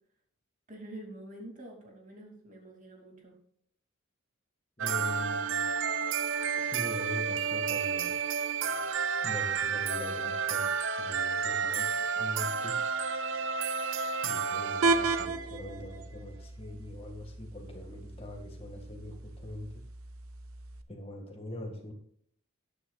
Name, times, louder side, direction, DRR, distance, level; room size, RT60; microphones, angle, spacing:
voice 1, 0.7-3.4, right 1 dB, 35° right, 1 dB, 2.6 m, -47 dB
voice 2, 4.8-5.7 6.6-8.2 9.2-11.9 12.1-12.9 14.2-19.8 20.9-21.9, left 1 dB, 25° left, 2 dB, 1.9 m, -42 dB
sound 1, 4.8-15.3, right 6 dB, 60° right, 0.6 m, -31 dB
sound 2, 14.8-20.8, right 3 dB, 85° right, 0.9 m, -34 dB
12.5 x 9.7 x 2.4 m, 0.67 s
head